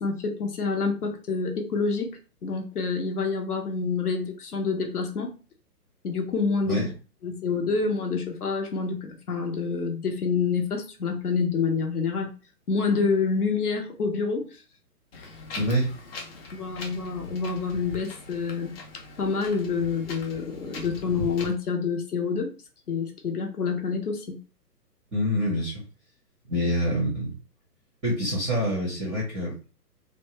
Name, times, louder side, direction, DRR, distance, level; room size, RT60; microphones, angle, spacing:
voice 1, 0.0-2.1 2.4-5.3 6.0-6.8 7.2-12.3 12.7-14.6 15.1-15.3 16.5-18.7 19.2-22.5 22.9-24.4, left 5 dB, 65° left, 3 dB, 0.9 m, -27 dB
Wind, 15.1-21.5, left 2 dB, 40° left, 0.7 m, -40 dB
voice 2, 15.5-15.9 25.1-25.8 26.5-27.4 28.0-29.6, equal, 5° right, -8 dB, 0.5 m, -26 dB
2.9 x 2.2 x 3.0 m, 0.34 s
figure-of-eight pair, 130°, 48 cm